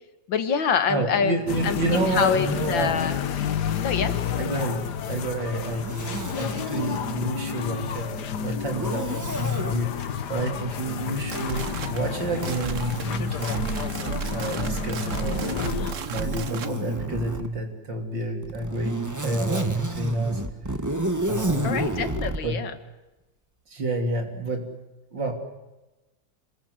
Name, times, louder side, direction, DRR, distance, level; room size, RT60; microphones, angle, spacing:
voice 1, 0.3-1.3 1.6-3.1 3.8-4.2 21.6-22.8, left 7 dB, 85° left, 10 dB, 2.3 m, -25 dB
voice 2, 0.9-3.0 4.4-13.7 14.3-15.7 16.1-20.4 21.3-21.9 22.4-22.6 23.7-24.7 25.1-25.3, right 2 dB, 70° right, 4 dB, 4.1 m, -29 dB
sound 1, 1.5-15.9, left 8 dB, 65° left, 1.6 m, -30 dB
Zipper (clothing), 5.7-7.1 8.7-9.8 11.2-14.4 15.2-17.5 18.4-22.4, right 1 dB, 10° right, 1.4 m, -32 dB
sound 2, 11.1-16.7, right 7 dB, 50° right, 1.2 m, -33 dB
26.5 x 21.0 x 8.1 m, 1.0 s
omnidirectional pair, 2.0 m